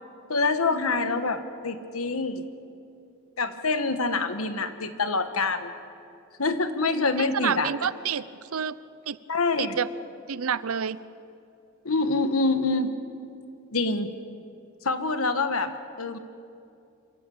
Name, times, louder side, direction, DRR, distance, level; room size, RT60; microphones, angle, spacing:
voice 1, 0.3-2.4 3.4-5.7 6.4-7.7 9.3-9.8 11.8-12.9 13.7-14.1 14.8-16.2, left 3 dB, 75° left, 10 dB, 1.4 m, -26 dB
voice 2, 7.2-8.3 8.5-8.8 9.1-9.2 9.6-9.9 10.3-11.0, right 7 dB, 75° right, 17 dB, 0.6 m, -28 dB
26.0 x 15.0 x 8.7 m, 2.6 s
head